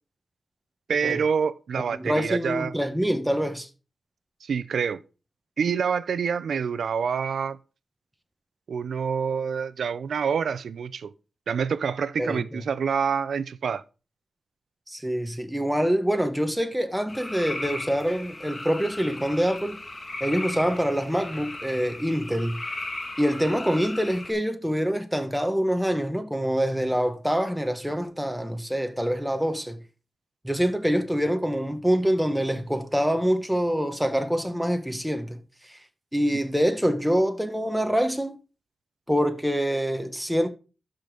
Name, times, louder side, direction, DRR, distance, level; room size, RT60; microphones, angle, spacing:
voice 1, 0.9-2.7 4.4-5.0 5.6-7.6 8.7-11.1 11.5-13.8, right 6 dB, 80° right, 0.5 m, -27 dB
voice 2, 1.9-3.7 12.2-12.6 14.9-19.8 20.2-22.6 23.2-29.8 30.4-35.4 35.7-35.8 36.1-38.4 39.1-40.5, equal, 5° right, 1.2 m, -25 dB
sound 1, 17.1-24.3, left 2 dB, 30° left, 1.8 m, -37 dB
12.0 x 5.1 x 3.9 m
wide cardioid pair, 90°, 0 cm